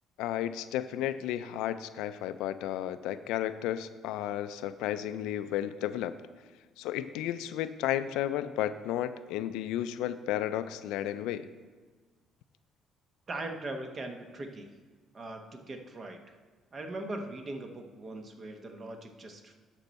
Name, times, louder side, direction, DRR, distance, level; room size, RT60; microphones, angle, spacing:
voice 1, 0.2-6.1 6.8-11.5, left 12 dB, 85° left, 13 dB, 0.3 m, -33 dB
voice 2, 13.3-14.7 15.1-16.2 16.7-19.5, right 2 dB, 40° right, 5 dB, 1.0 m, -40 dB
12.5 x 4.5 x 4.1 m, 1.4 s
supercardioid pair, 80°, 0 cm